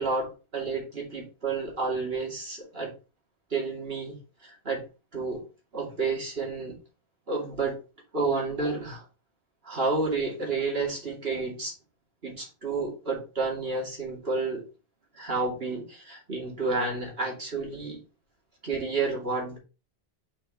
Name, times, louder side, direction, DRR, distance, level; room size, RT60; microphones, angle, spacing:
voice 1, 0.0-2.9 3.5-4.8 5.1-5.4 5.7-6.8 7.3-7.8 8.1-9.0 9.6-11.7 12.2-14.7 15.1-18.0 18.6-19.6, right 3 dB, 65° right, -1 dB, 2.7 m, -30 dB
5.8 x 4.6 x 4.3 m, 0.32 s
omnidirectional pair, 1.1 m